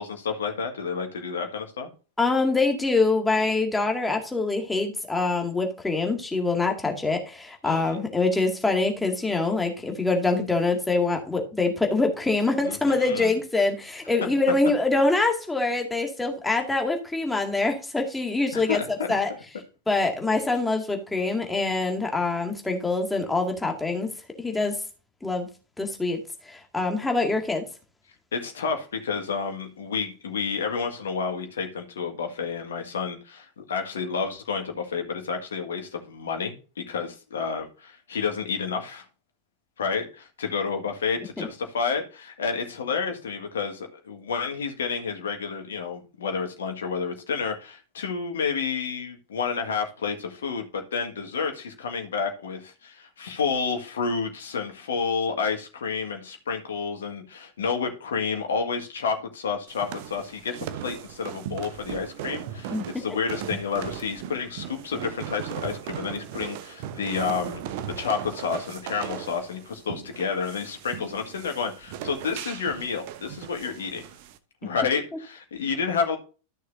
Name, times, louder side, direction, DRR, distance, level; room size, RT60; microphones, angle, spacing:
voice 1, 0.0-1.9 7.6-8.0 12.6-13.3 18.5-19.1 28.3-36.6 36.9-39.1 39.8-67.6 68.0-74.0 74.6-76.2, left 5 dB, 65° left, 4 dB, 1.8 m, -30 dB
voice 2, 2.2-18.8 19.1-19.3 19.9-24.1 24.4-24.8 25.2-25.5 25.8-26.2 26.5-27.7 41.4-41.5 62.7-62.8, left 3 dB, 10° left, 3 dB, 2.0 m, -24 dB
sound 1, 59.7-74.4, right 10 dB, 50° right, 0.9 m, -38 dB
14.0 x 6.5 x 2.6 m, 0.33 s
figure-of-eight pair, 90°, 0 cm